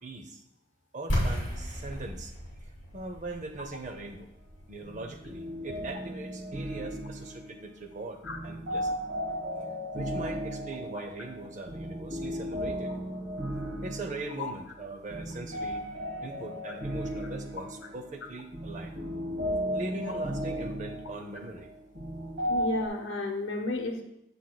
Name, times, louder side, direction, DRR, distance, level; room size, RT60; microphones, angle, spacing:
voice 1, 0.0-0.4 0.9-2.3 2.9-4.3 4.7-9.0 9.9-12.9 13.8-15.9 16.2-18.9 19.7-21.7, right 2 dB, 35° right, 4 dB, 0.6 m, -41 dB
sound 1, 1.1-6.8, equal, 40° left, 2.6 m, -35 dB
sound 2, 4.8-22.9, equal, 60° right, 1.4 m, -35 dB
voice 2, 22.5-24.0, left 2 dB, 70° left, 3 dB, 0.9 m, -32 dB
7.8 x 7.0 x 2.3 m, 0.79 s
head